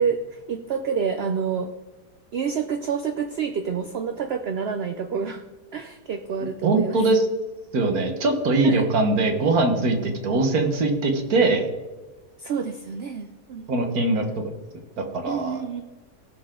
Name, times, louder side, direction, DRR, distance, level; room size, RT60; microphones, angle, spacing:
voice 1, 0.0-1.7 2.3-5.4 5.7-7.0 8.6-8.9 12.4-13.7 15.3-15.8, right 6 dB, 55° right, 7 dB, 0.8 m, -28 dB
voice 2, 6.6-7.3 7.7-11.7 13.7-14.3 15.0-15.6, right 2 dB, 90° right, 5 dB, 1.8 m, -21 dB
17.5 x 6.7 x 3.8 m, 1.2 s
omnidirectional pair, 1.5 m